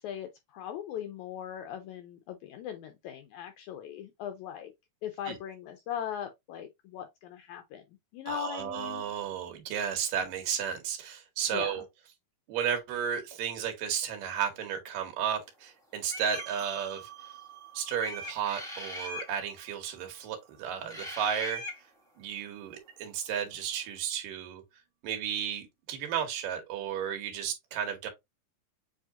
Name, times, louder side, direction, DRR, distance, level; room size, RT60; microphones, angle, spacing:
voice 1, 0.0-4.7 5.0-7.8 8.1-9.0 11.5-11.7, left 10 dB, 85° left, 1.7 m, -39 dB
voice 2, 8.3-11.8 12.5-17.1 17.7-21.6 22.2-24.6 25.0-28.1, right 8 dB, 75° right, 2.8 m, -33 dB
sound 1, 16.1-16.5 18.0-19.3 20.9-21.8, equal, 5° left, 0.5 m, -39 dB
sound 2, 16.3-21.1, right 11 dB, 55° right, 2.9 m, -50 dB
7.6 x 2.8 x 2.4 m
omnidirectional pair, 3.9 m